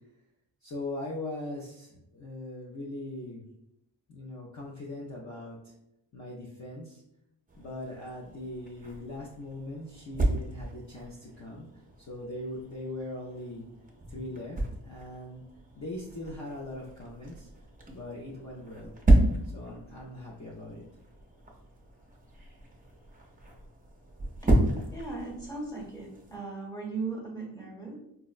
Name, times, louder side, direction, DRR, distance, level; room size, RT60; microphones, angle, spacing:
voice 1, 0.6-3.5 4.1-5.7 6.1-7.0 7.6-13.7 14.1-15.4 15.7-17.5 17.9-19.0 19.4-20.9, left 1 dB, 45° left, -3 dB, 0.5 m, -40 dB
sound 1, 7.5-26.4, right 1 dB, 20° right, 0.4 m, -32 dB
voice 2, 24.9-28.0, right 3 dB, 10° left, -4 dB, 0.9 m, -37 dB
4.5 x 2.0 x 2.4 m, 0.79 s
wide cardioid pair, 160°, 43 cm